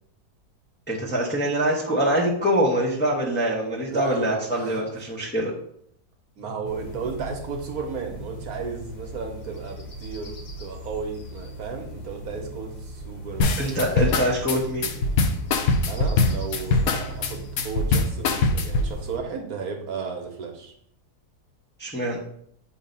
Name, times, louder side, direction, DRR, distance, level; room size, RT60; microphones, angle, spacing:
voice 1, 0.9-5.5 13.6-14.9 21.8-22.2, equal, 10° left, -3 dB, 0.8 m, -24 dB
voice 2, 3.9-4.8 6.4-13.6 15.9-20.7, right 5 dB, 65° right, 3 dB, 1.3 m, -34 dB
sound 1, 6.6-19.2, right 1 dB, 45° left, 0.5 m, -39 dB
sound 2, 13.4-18.9, left 3 dB, 65° left, 1.0 m, -22 dB
7.1 x 2.8 x 5.2 m, 0.67 s
omnidirectional pair, 1.8 m